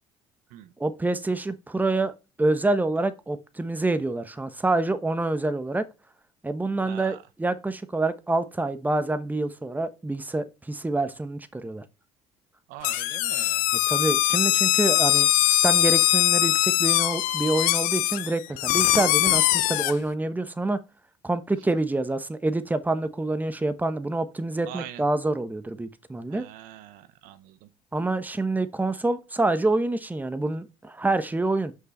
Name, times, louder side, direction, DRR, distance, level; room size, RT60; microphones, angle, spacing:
voice 1, 0.8-2.1 2.4-5.8 6.4-11.8 13.9-20.8 21.2-26.5 27.9-31.7, right 2 dB, 10° right, 0.9 m, -27 dB
voice 2, 6.9-7.2 12.7-13.6 24.7-25.0 26.3-27.7, right 12 dB, 75° right, 0.8 m, -42 dB
sound 1, 12.8-19.9, left 16 dB, 75° left, 0.5 m, -22 dB
6.0 x 5.7 x 4.3 m
hypercardioid pair, 65°, 15 cm